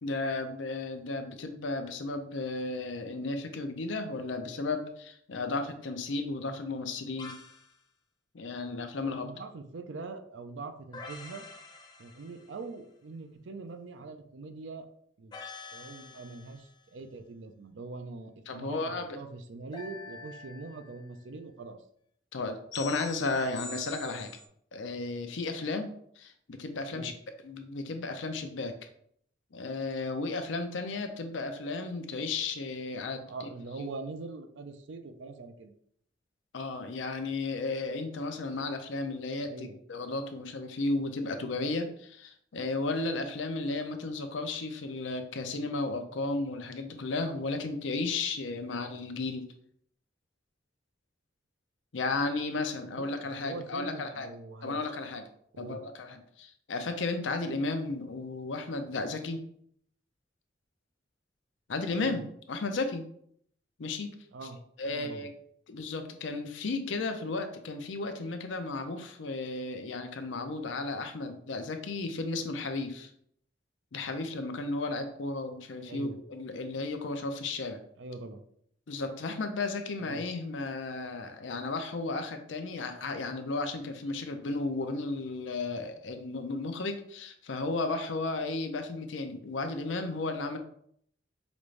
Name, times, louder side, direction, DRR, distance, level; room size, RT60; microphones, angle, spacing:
voice 1, 0.0-7.3 8.3-9.3 18.5-19.2 22.3-24.3 24.7-27.1 27.4-28.7 29.5-33.5 33.8-33.9 36.5-49.4 51.9-54.3 54.6-55.2 55.6-59.4 61.7-63.1 63.8-64.1 64.8-65.3 65.7-73.1 73.9-77.8 78.9-90.6, left 3 dB, 90° left, 6 dB, 0.6 m, -34 dB
sound 1, 7.2-7.7 10.9-12.6 15.3-16.7 19.7-21.2 22.7-24.5, left 4 dB, 25° left, 0.5 m, -45 dB
voice 2, 9.0-11.4 12.0-14.9 15.2-15.3 15.7-21.8 26.9-27.1 33.3-35.7 39.4-39.8 52.9-54.9 55.5-55.8 61.9-62.2 64.3-64.6 64.9-65.3 75.8-76.2 78.0-78.4 80.0-80.2, right 3 dB, 80° right, 8 dB, 0.5 m, -43 dB
5.1 x 2.5 x 3.2 m, 0.67 s
head